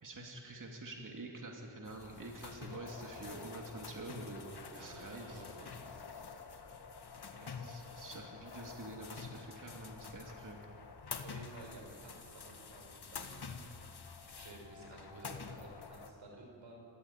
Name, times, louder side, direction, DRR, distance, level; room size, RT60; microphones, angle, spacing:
voice 1, 0.0-5.4 7.3-10.6, right 2 dB, 45° right, 0 dB, 2.8 m, -47 dB
sound 1, 1.9-16.1, left 5 dB, 60° left, 1.8 m, -48 dB
voice 2, 4.7-5.9 11.2-13.6 14.3-16.9, right 2 dB, 90° right, 0 dB, 5.5 m, -53 dB
26.5 x 14.5 x 9.2 m, 3.0 s
cardioid pair, 70°, 44 cm